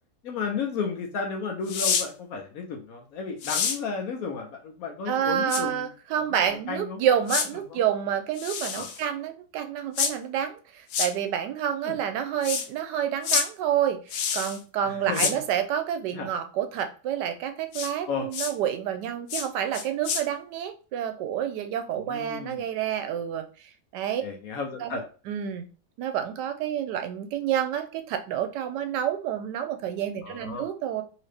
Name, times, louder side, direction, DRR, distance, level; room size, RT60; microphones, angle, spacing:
voice 1, 0.2-5.9 6.3-7.0 7.5-7.8 8.7-8.9 11.8-12.0 14.9-15.4 16.1-16.3 18.1-18.3 21.9-22.6 24.2-25.0 30.2-30.7, left 5 dB, 65° left, 2 dB, 1.0 m, -33 dB
sound 1, 1.7-2.1 3.4-3.8 5.5-5.6 7.3-7.5 8.4-9.0 10.0-10.1 10.9-11.1 12.4-12.7 13.2-13.5 14.1-14.6 15.1-15.3 17.7-17.9 18.3-18.5 19.3-19.5 19.7-20.2, left 6 dB, 85° left, 1.2 m, -27 dB
voice 2, 5.1-23.4 23.9-24.2 24.8-24.9 25.3-25.7 26.0-31.0, right 9 dB, 85° right, 8 dB, 1.2 m, -28 dB
2.9 x 2.8 x 3.3 m, 0.36 s
omnidirectional pair, 1.8 m